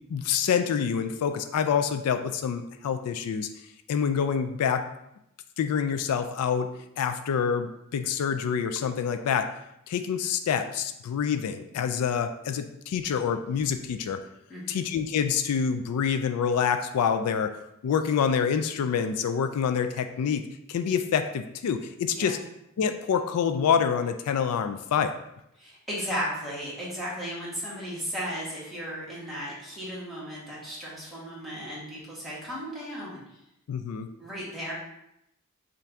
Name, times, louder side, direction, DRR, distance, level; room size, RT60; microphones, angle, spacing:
voice 1, 0.1-3.5 3.9-4.9 5.6-6.7 7.0-9.5 9.9-14.2 14.7-17.5 17.8-22.4 22.8-25.1 33.7-34.1, left 7 dB, 80° left, 8 dB, 0.3 m, -27 dB
voice 2, 25.6-33.2 34.2-34.7, equal, ahead, -9 dB, 1.6 m, -35 dB
5.6 x 2.6 x 3.4 m, 0.83 s
head